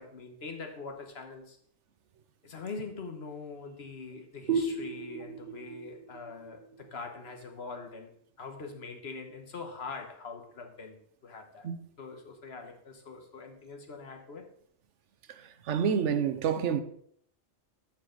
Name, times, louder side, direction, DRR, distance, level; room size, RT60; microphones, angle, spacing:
voice 1, 0.0-1.6 2.4-8.1 8.4-11.7 12.0-14.5, left 4 dB, 60° left, 1.4 m, -43 dB
sound 1, 4.5-7.9, right 4 dB, 45° right, 1.1 m, -35 dB
voice 2, 15.3-16.8, right 7 dB, 75° right, 1.0 m, -28 dB
13.0 x 4.7 x 3.8 m
omnidirectional pair, 1.2 m